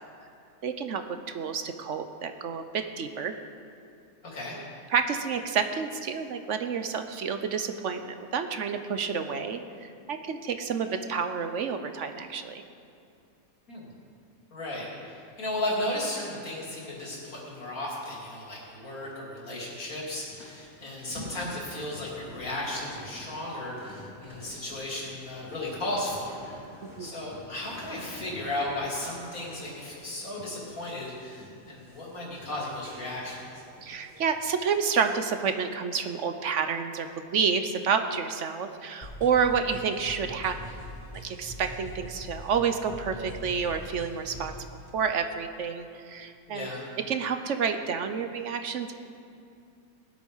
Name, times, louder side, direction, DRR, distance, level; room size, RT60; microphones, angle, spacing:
voice 1, 0.6-3.3 4.6-4.7 4.9-12.6 26.8-27.1 33.8-40.6 41.2-44.5 44.9-46.7 47.1-48.9, right 6 dB, 65° right, 8 dB, 1.0 m, -29 dB
voice 2, 4.2-4.6 13.7-13.9 14.5-33.4 46.5-46.8, left 1 dB, 80° left, -4 dB, 3.5 m, -35 dB
sound 1, 20.2-34.9, left 1 dB, 15° right, 3.7 m, -49 dB
sound 2, 39.0-44.7, equal, 30° left, 2.7 m, -43 dB
19.0 x 8.3 x 5.5 m, 2.6 s
omnidirectional pair, 1.5 m